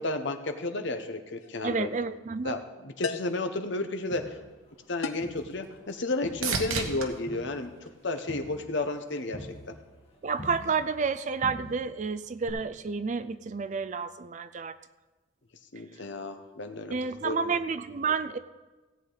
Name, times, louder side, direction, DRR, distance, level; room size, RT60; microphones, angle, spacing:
voice 1, 0.0-1.9 2.4-4.4 4.9-9.8 15.7-17.0 17.2-17.6, left 2 dB, 55° left, 7 dB, 0.9 m, -32 dB
sound 1, 1.4-1.6 3.0-3.5 5.0-5.4, left 5 dB, 85° left, 0.6 m, -35 dB
voice 2, 1.6-2.6 10.2-14.8 16.9-18.4, right 5 dB, 35° right, 13 dB, 0.4 m, -30 dB
Crowd, 4.1-5.9 6.2-11.1 11.4-12.1 12.5-12.6, equal, 30° left, 2.0 m, -46 dB
sound 2, 4.7-8.9 9.4-10.0 17.8-17.9, right 5 dB, 90° right, 1.2 m, -37 dB
17.0 x 8.2 x 4.0 m, 1.2 s
head